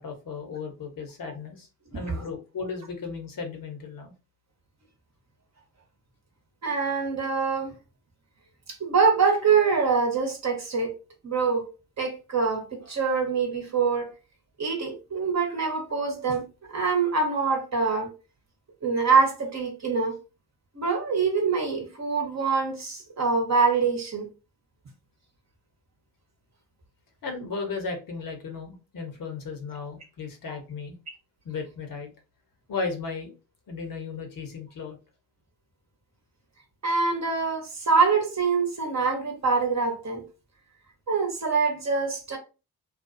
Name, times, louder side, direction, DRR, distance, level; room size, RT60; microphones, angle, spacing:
voice 1, 0.0-1.7 1.9-4.1 27.2-31.0 31.4-32.1 32.7-33.3 33.7-35.0, left 4 dB, 45° left, 0.9 m, -35 dB
voice 2, 6.6-7.7 8.7-10.9 11.2-11.6 12.0-14.1 14.6-18.1 18.8-20.1 20.7-24.3 36.8-40.2 41.1-42.4, right 5 dB, 35° right, 1.1 m, -24 dB
2.4 x 2.2 x 2.5 m
hypercardioid pair, 50°, 47 cm